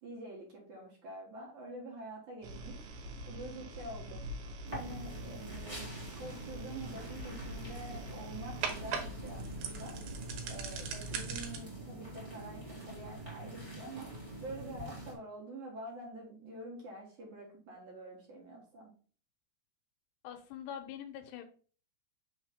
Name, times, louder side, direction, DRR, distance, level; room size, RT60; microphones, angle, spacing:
voice 1, 0.0-2.8 3.3-4.3 4.7-5.9 6.2-10.0 10.5-14.1 14.4-18.9, right 1 dB, 60° right, -2 dB, 2.4 m, -47 dB
sound 1, 2.4-11.6, right 3 dB, 75° right, 2.9 m, -42 dB
sound 2, 4.7-15.1, right 1 dB, 15° right, 1.0 m, -45 dB
voice 2, 20.2-21.4, left 9 dB, 80° left, 6 dB, 2.8 m, -44 dB
6.4 x 3.2 x 4.9 m, 0.41 s
omnidirectional pair, 4.8 m